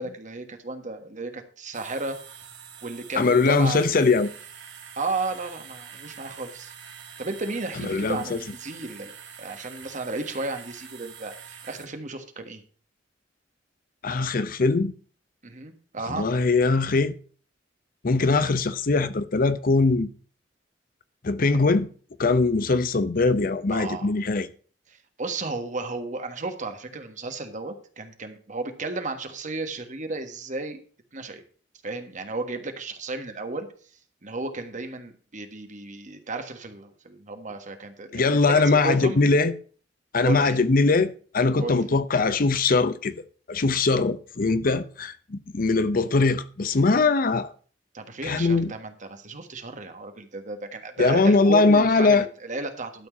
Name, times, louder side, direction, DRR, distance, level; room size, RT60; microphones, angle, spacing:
voice 1, 0.0-2.2 2.8-3.8 5.0-6.7 7.2-9.1 9.4-12.6 15.4-16.3 23.7-24.1 24.9-30.8 31.1-31.4 31.8-33.7 34.2-39.2 40.2-40.6 41.6-41.8 47.9-53.1, right 3 dB, 45° right, 1.5 m, -34 dB
sound 1, 1.7-11.9, right 7 dB, 80° right, 2.0 m, -45 dB
voice 2, 3.2-4.3 7.9-8.2 14.0-14.9 16.1-17.2 18.0-20.1 21.2-21.9 22.2-24.5 38.1-39.5 40.1-43.1 43.5-47.5 48.2-48.7 51.0-52.2, left 3 dB, 50° left, 0.7 m, -21 dB
12.0 x 4.5 x 7.4 m
head